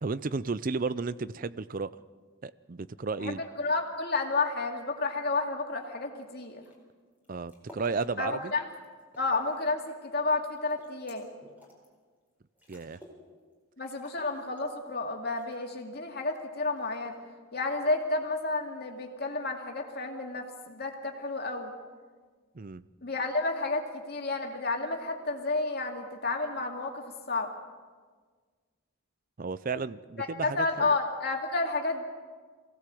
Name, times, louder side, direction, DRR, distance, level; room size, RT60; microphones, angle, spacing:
voice 1, 0.0-1.9 2.4-3.4 7.3-8.5 12.7-13.0 22.5-22.8 29.4-31.0, right 4 dB, 40° right, 16 dB, 0.5 m, -33 dB
voice 2, 3.2-6.6 8.2-8.7 9.2-11.3 13.8-17.1 17.5-21.7 23.0-27.5 30.2-32.0, left 3 dB, 50° left, 2 dB, 2.5 m, -31 dB
sound 1, 6.6-6.8 7.1-8.1 8.6-9.7 10.0-11.9 12.3-12.4 12.6-13.2 13.5-13.6 13.9-14.9 15.4-15.9 16.8-17.3, left 1 dB, 10° right, 4.5 m, -54 dB
23.5 x 17.0 x 7.7 m, 1.5 s
head